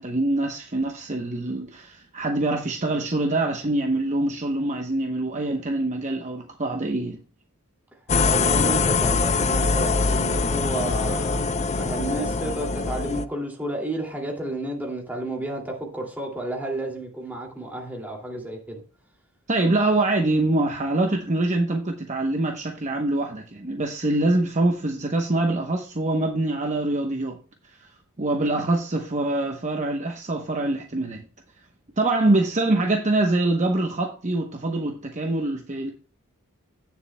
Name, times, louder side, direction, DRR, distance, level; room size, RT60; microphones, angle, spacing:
voice 1, 0.0-7.2 19.5-27.4 28.2-31.2 32.0-35.9, right 2 dB, 30° right, 0.9 m, -24 dB
sound 1, 8.1-13.2, left 4 dB, 30° left, 0.4 m, -23 dB
voice 2, 8.3-18.8, right 1 dB, 10° right, 2.4 m, -31 dB
16.5 x 7.1 x 2.2 m
head